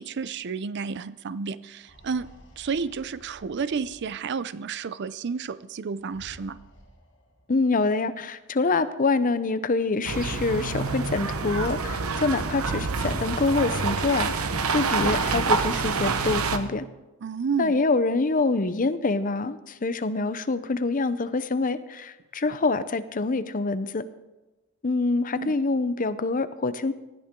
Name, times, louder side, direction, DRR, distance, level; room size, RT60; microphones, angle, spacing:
voice 1, 0.0-2.3 2.6-6.6 17.2-17.8 25.4-25.6, right 5 dB, 55° right, 16 dB, 0.5 m, -31 dB
sound 1, 1.7-4.5 5.9-7.6 8.6-8.7 9.0-9.1 10.4-13.5 14.1-16.7, equal, 55° left, 2.9 m, -50 dB
voice 2, 7.5-14.3 14.7-16.9 17.6-24.1 24.8-26.9, left 3 dB, 40° left, 13 dB, 0.7 m, -25 dB
sound 2, 10.0-16.6, right 4 dB, 80° right, 1.1 m, -27 dB
19.0 x 13.0 x 3.8 m, 1.1 s
head